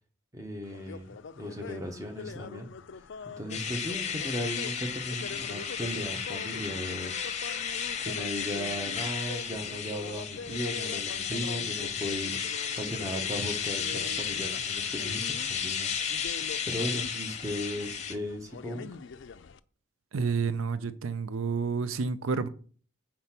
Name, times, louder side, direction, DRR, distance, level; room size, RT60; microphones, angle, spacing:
voice 1, 0.3-2.7 3.2-7.2 8.0-12.5 12.8-15.9 16.7-18.9, equal, 15° right, 1.1 m, -36 dB
sound 1, 0.6-19.6, left 5 dB, 60° left, 0.4 m, -45 dB
sound 2, 3.5-18.2, left 7 dB, 35° left, 0.8 m, -33 dB
voice 2, 20.1-22.5, right 5 dB, 80° right, 0.5 m, -29 dB
6.7 x 4.4 x 5.8 m
head